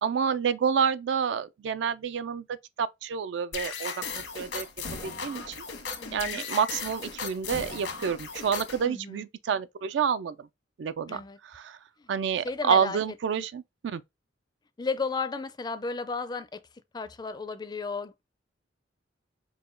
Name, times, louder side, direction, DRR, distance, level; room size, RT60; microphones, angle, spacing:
voice 1, 0.0-4.7 5.0-5.6 6.1-10.5 10.8-11.8 12.1-14.0, right 7 dB, 70° right, 0.3 m, -29 dB
sound 1, 3.5-8.8, left 5 dB, 85° left, 1.2 m, -37 dB
voice 2, 6.0-6.4 8.8-9.3 11.1-11.4 12.0-12.1 12.4-13.0 14.8-16.6 16.9-18.2, left 4 dB, 25° left, 0.4 m, -34 dB
4.8 x 2.2 x 3.7 m
head